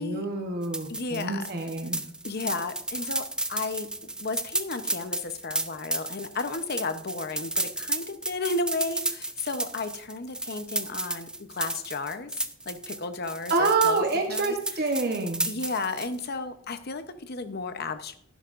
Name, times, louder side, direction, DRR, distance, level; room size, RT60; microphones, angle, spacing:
voice 1, 0.0-2.0 13.5-15.5, right 3 dB, 50° right, 4 dB, 0.9 m, -27 dB
sound 1, 0.6-16.2, right 2 dB, 5° right, 0.4 m, -33 dB
voice 2, 0.9-1.5 2.2-3.9 4.2-12.3 12.7-14.0 14.3-14.6 15.1-18.2, left 3 dB, 50° left, 9 dB, 0.8 m, -33 dB
11.5 x 10.5 x 2.5 m, 0.63 s
head